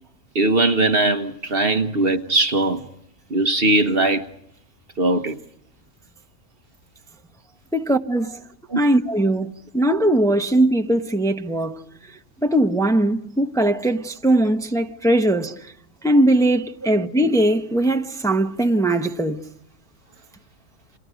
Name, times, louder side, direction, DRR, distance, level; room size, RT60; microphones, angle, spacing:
voice 1, 0.3-2.8 3.3-4.2 5.0-5.4 8.7-8.8, right 2 dB, 45° right, 1.3 m, -20 dB
voice 2, 7.7-8.4 8.7-11.8 12.4-15.7 16.0-19.4, right 1 dB, 5° left, 1.1 m, -20 dB
29.5 x 28.0 x 5.2 m
omnidirectional pair, 1.5 m